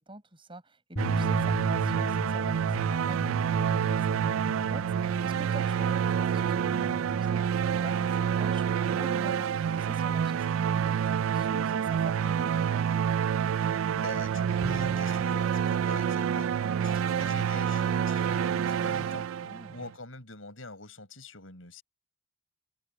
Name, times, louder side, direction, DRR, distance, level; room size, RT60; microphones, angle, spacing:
voice 1, 0.0-12.8 19.4-19.8, right 1 dB, 25° right, 6.6 m, -46 dB
sound 1, 1.0-7.2, equal, 55° left, 4.5 m, -37 dB
sound 2, 1.0-19.9, right 8 dB, 90° right, 0.3 m, -28 dB
voice 2, 13.6-19.3 19.7-21.8, left 3 dB, 80° left, 8.0 m, -45 dB
Bowed string instrument, 14.6-15.5, equal, ahead, 1.5 m, -38 dB
head